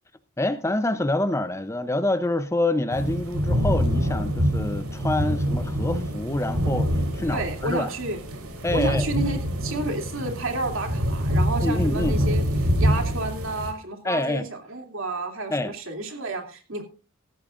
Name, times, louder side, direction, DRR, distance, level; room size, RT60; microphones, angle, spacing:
voice 1, 0.4-6.9 7.1-7.9 8.6-9.1 11.6-12.2 14.0-14.5 15.5-15.7, left 2 dB, 15° left, 0.6 m, -26 dB
sound 1, 2.9-13.7, equal, 85° right, 3.4 m, -25 dB
voice 2, 7.3-8.2 8.7-16.8, right 2 dB, 65° right, 2.9 m, -31 dB
16.5 x 13.5 x 2.5 m
head